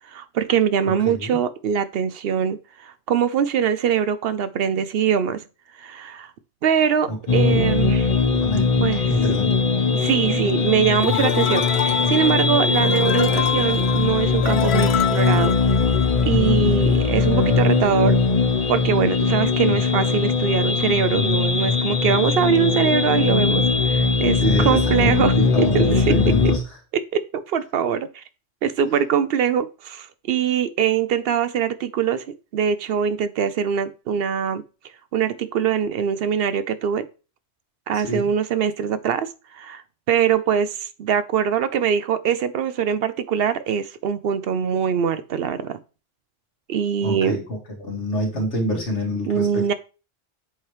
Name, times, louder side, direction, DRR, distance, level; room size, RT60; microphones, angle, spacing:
voice 1, 0.1-5.4 5.8-6.3 6.6-8.1 8.8-9.0 9.9-15.5 16.3-18.2 18.7-26.0 26.9-28.2 28.6-32.2 32.5-34.6 35.1-37.1 37.9-39.3 39.5-39.8 40.1-45.8 46.7-47.4 49.3-49.7, right 8 dB, 65° right, 0.7 m, -23 dB
voice 2, 1.1-1.4 7.1-7.7 8.3-9.6 19.7-19.8 24.4-26.6 37.9-38.3 47.0-49.7, equal, 85° left, 2.1 m, -27 dB
sound 1, 7.3-26.6, left 4 dB, 35° left, 0.9 m, -20 dB
sound 2, 11.0-16.5, left 11 dB, 70° left, 0.8 m, -28 dB
7.8 x 3.0 x 4.8 m
omnidirectional pair, 1.1 m